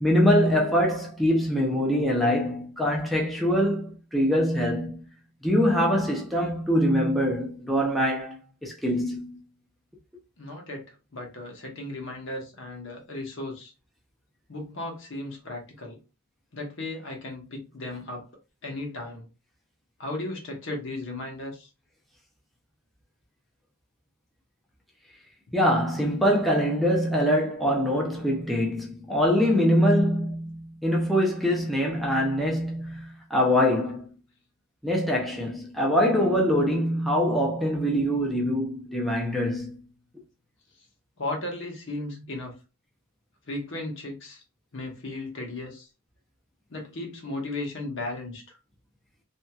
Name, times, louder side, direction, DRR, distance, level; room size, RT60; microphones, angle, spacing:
voice 1, 0.0-5.0 5.4-9.4 25.5-34.1 34.8-39.8, equal, ahead, 0.5 m, -24 dB
voice 2, 10.4-13.7 14.5-16.0 16.5-18.3 18.6-19.3 20.0-21.7 41.2-42.5 43.5-44.4 44.7-45.9 46.7-48.4, left 2 dB, 65° left, 1.0 m, -35 dB
2.9 x 2.7 x 2.3 m
head